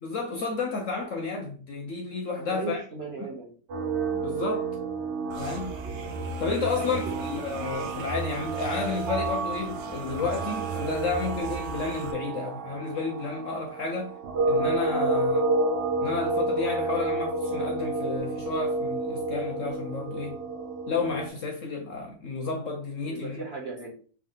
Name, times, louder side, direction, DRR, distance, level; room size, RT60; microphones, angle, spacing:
voice 1, 0.0-2.8 4.1-4.7 5.4-5.8 6.4-14.1 14.4-15.4 16.0-20.4 20.9-23.4, left 4 dB, 60° left, 0.9 m, -31 dB
voice 2, 2.4-3.5 6.6-7.2 15.1-15.3 23.0-23.9, right 4 dB, 45° right, 1.0 m, -37 dB
sound 1, 3.7-21.3, right 2 dB, 90° right, 1.8 m, -30 dB
sound 2, 5.3-12.1, right 3 dB, 65° right, 0.6 m, -38 dB
3.4 x 3.3 x 3.7 m
omnidirectional pair, 1.8 m